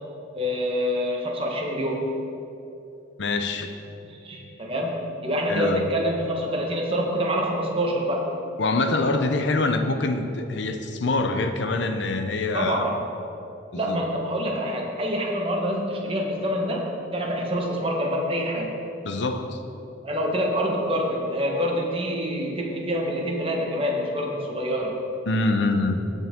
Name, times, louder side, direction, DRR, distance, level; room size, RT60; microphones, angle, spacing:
voice 1, 0.3-2.1 4.1-8.3 12.5-13.0 13.7-18.7 20.0-25.0, equal, 30° right, 0 dB, 1.2 m, -26 dB
voice 2, 3.2-3.7 5.5-5.8 8.6-12.9 13.7-14.0 19.0-19.6 25.3-26.0, left 2 dB, 60° left, 6 dB, 0.7 m, -25 dB
16.0 x 5.5 x 3.7 m, 2.9 s
head